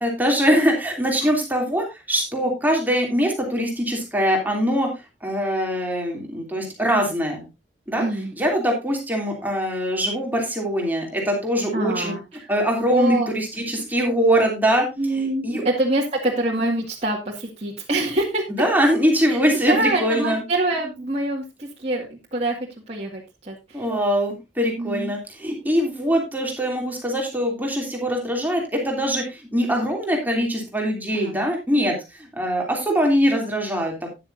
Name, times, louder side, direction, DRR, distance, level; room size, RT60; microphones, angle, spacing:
voice 1, 0.0-4.9 5.2-7.5 7.9-8.0 8.4-12.1 12.5-14.8 15.1-15.6 18.6-20.4 23.7-34.1, equal, 10° right, 0 dB, 3.0 m, -22 dB
voice 2, 8.0-8.3 11.7-12.6 12.9-13.3 15.0-18.5 19.3-22.6 22.9-23.9 24.8-25.1 31.1-31.4, right 2 dB, 35° right, -4 dB, 2.1 m, -25 dB
13.0 x 10.0 x 2.7 m, 0.23 s
head